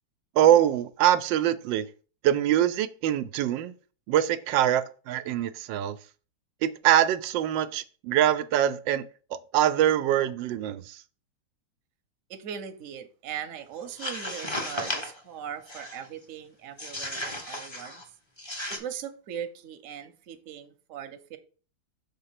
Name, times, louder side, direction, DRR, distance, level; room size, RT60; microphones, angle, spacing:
voice 1, 0.4-1.9 2.2-3.7 4.1-6.0 6.6-9.1 9.5-11.0, right 11 dB, 90° right, 1.3 m, -23 dB
voice 2, 12.3-18.0 18.7-21.4, right 8 dB, 55° right, 1.0 m, -39 dB
sound 1, 13.8-15.2 15.7-16.1 16.8-18.0 18.4-18.8, left 1 dB, 20° left, 0.9 m, -34 dB
6.2 x 3.7 x 5.8 m
omnidirectional pair, 2.0 m